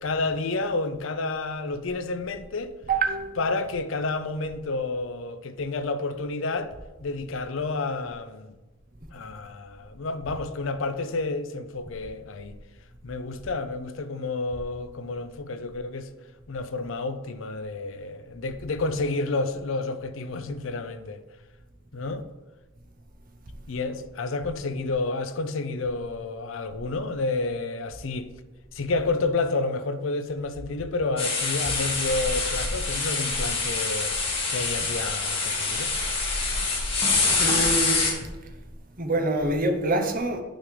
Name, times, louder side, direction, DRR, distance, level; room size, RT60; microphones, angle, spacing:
voice 1, 0.0-2.8 3.4-6.7 7.0-8.6 9.1-12.6 13.0-16.1 16.5-21.2 21.9-22.3 23.7-28.3 28.7-34.2 34.5-35.9, left 3 dB, 65° left, 0.5 m, -30 dB
voice 2, 2.9-3.5 37.4-38.1 39.0-40.4, right 2 dB, 40° right, 0.8 m, -26 dB
sound 1, 31.2-38.1, left 3 dB, 30° left, 1.7 m, -25 dB
9.2 x 6.3 x 3.3 m
head